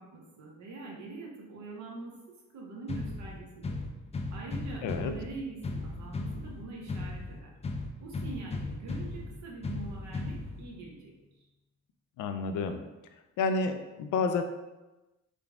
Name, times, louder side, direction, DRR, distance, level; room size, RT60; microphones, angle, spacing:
voice 1, 0.0-3.8 4.3-7.5 8.0-11.1, right 3 dB, 65° right, -2 dB, 1.0 m, -44 dB
sound 1, 2.9-10.9, left 2 dB, 20° left, 0.3 m, -37 dB
voice 2, 4.8-5.1 12.2-12.8 13.4-14.4, left 4 dB, 80° left, 7 dB, 0.5 m, -30 dB
3.7 x 2.3 x 3.5 m, 1.1 s
cardioid pair, 90°, 30 cm